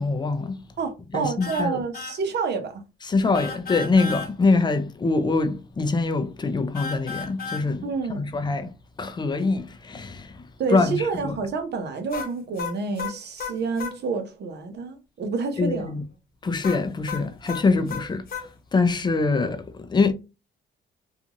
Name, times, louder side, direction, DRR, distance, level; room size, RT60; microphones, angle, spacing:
voice 1, 0.0-0.6 1.1-1.8 3.1-8.7 9.0-10.4 10.7-11.4 15.6-16.0 16.4-20.1, left 3 dB, 20° left, 0.5 m, -24 dB
voice 2, 0.8-2.8 7.8-8.3 10.6-15.9, right 4 dB, 60° right, 0.8 m, -28 dB
sound 1, 1.4-1.7 1.9-2.2 3.3-4.3 6.7-7.7 12.1-14.0 16.6-18.5, left 5 dB, 50° left, 1.0 m, -33 dB
2.6 x 2.3 x 2.9 m
cardioid pair, 90°, 20 cm